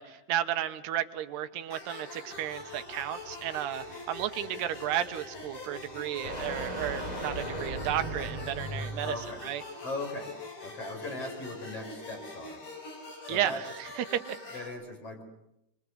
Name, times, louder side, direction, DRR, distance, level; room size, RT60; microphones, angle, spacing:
voice 1, 0.0-9.2 9.4-9.6 13.3-14.4, right 11 dB, 80° right, 9 dB, 3.2 m, -33 dB
sound 1, 1.7-14.7, left 2 dB, 50° left, 8.5 m, -44 dB
sound 2, 2.4-9.4, equal, 10° left, 2.4 m, -39 dB
voice 2, 9.0-9.4 9.8-10.3 10.6-12.6 13.2-13.6 14.5-15.2, left 2 dB, 35° left, 2 dB, 5.5 m, -38 dB
28.0 x 24.5 x 8.0 m, 0.81 s
omnidirectional pair, 4.8 m